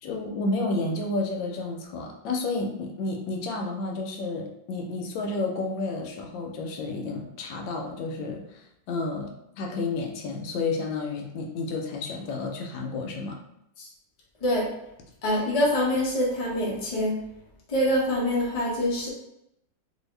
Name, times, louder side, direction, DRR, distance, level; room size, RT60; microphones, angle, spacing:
voice 1, 0.0-9.3 9.6-13.4, left 3 dB, 80° left, 2 dB, 1.3 m, -31 dB
voice 2, 15.2-17.2 17.7-19.1, left 1 dB, 40° left, -4 dB, 0.5 m, -25 dB
2.9 x 2.7 x 3.2 m, 0.82 s
omnidirectional pair, 2.1 m